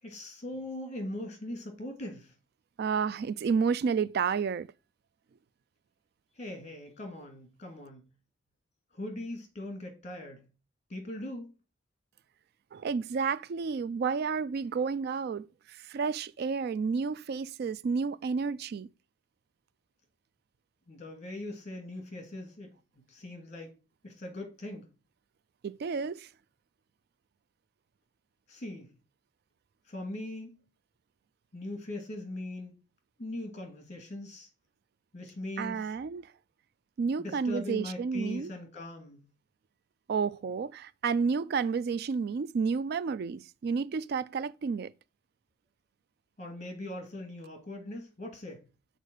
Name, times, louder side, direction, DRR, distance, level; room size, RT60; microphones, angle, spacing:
voice 1, 0.0-2.3 6.3-8.0 8.9-10.4 10.9-11.5 20.9-22.7 23.1-23.8 24.0-24.9 28.5-28.9 29.9-30.6 31.5-32.7 33.2-34.5 35.1-35.9 37.2-39.2 46.4-48.6, left 1 dB, 40° left, 2.3 m, -40 dB
voice 2, 2.8-4.7 12.7-18.9 25.6-26.3 35.6-36.3 37.0-38.5 40.1-44.9, right 5 dB, 55° right, 0.3 m, -31 dB
6.6 x 4.5 x 6.3 m
head